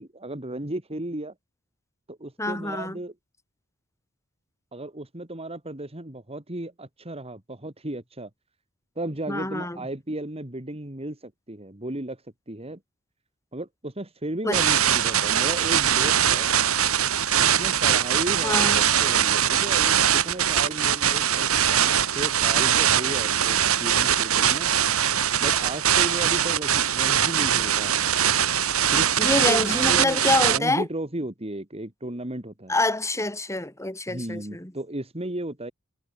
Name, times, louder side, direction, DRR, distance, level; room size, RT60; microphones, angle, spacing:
voice 1, 0.0-1.3 2.1-3.1 4.7-8.3 9.0-12.2 12.5-12.8 13.5-16.5 17.4-24.7 25.4-28.1 28.9-32.8 34.1-35.7, right 1 dB, 30° right, 2.9 m, -34 dB
voice 2, 2.4-3.0 9.3-9.8 14.4-14.6 18.4-18.8 29.2-30.8 32.7-34.7, left 2 dB, 15° left, 5.1 m, -26 dB
sound 1, 14.5-30.6, right 9 dB, 75° right, 3.9 m, -22 dB
head